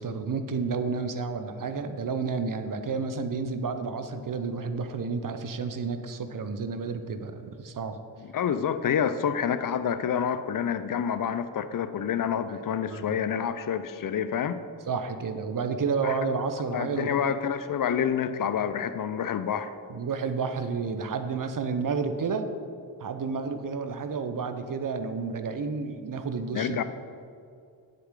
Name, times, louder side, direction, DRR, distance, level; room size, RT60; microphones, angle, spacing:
voice 1, 0.0-8.0 12.5-13.1 14.9-17.4 19.9-22.5 23.0-26.8, right 5 dB, 40° right, 9 dB, 0.9 m, -31 dB
voice 2, 8.3-14.6 16.0-16.2 16.7-19.7 26.5-26.8, left 8 dB, 45° left, 12 dB, 0.7 m, -28 dB
9.4 x 7.9 x 3.8 m, 2.4 s
hypercardioid pair, 45°, 49 cm